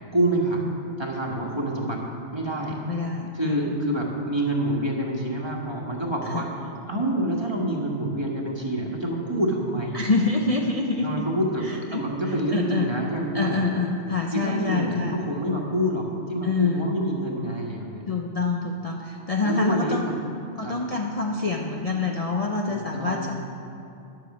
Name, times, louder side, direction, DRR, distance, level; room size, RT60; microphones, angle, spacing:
voice 1, 0.1-0.7 1.0-2.8 3.3-6.5 6.9-10.0 11.0-13.6 14.3-18.0 19.4-20.1 20.6-20.8 22.7-23.3, right 1 dB, 20° right, -2 dB, 1.5 m, -27 dB
voice 2, 2.9-3.8 6.3-6.5 9.9-11.2 11.6-12.9 13.3-15.2 16.4-17.0 18.1-20.1 20.6-23.4, left 3 dB, 35° left, -1 dB, 0.7 m, -26 dB
10.5 x 7.8 x 7.1 m, 2.8 s
omnidirectional pair, 1.2 m